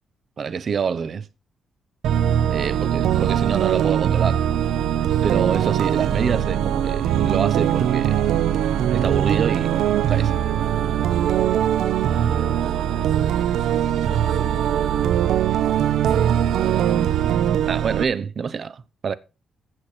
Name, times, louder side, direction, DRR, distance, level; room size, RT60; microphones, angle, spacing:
voice 1, 0.4-1.3 2.5-4.4 5.2-8.3 8.9-10.4 17.7-19.2, right 6 dB, 45° right, 0.8 m, -26 dB
sound 1, 2.0-18.0, right 10 dB, 85° right, 0.8 m, -21 dB
voice 2, 2.1-2.6 10.9-11.3 11.9-14.5 15.1-15.5 15.9-16.9 17.2-17.5, right 6 dB, 70° right, 3.6 m, -47 dB
15.5 x 6.7 x 4.4 m
cardioid pair, 130°, 0 cm